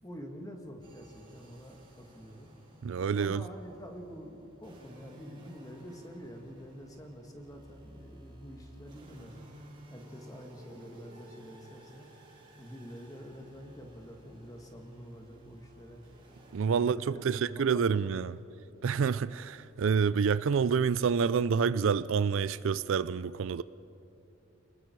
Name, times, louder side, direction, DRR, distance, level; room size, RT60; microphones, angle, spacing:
voice 1, 0.0-2.5 3.2-9.4 9.9-12.1 12.6-16.0 16.7-18.1, equal, 15° left, 2.1 m, -47 dB
sound 1, 0.8-16.7, right 1 dB, 20° right, 3.5 m, -54 dB
voice 2, 2.8-3.4 16.5-18.4 18.8-23.6, right 6 dB, 60° right, 0.4 m, -28 dB
30.0 x 20.0 x 4.7 m
head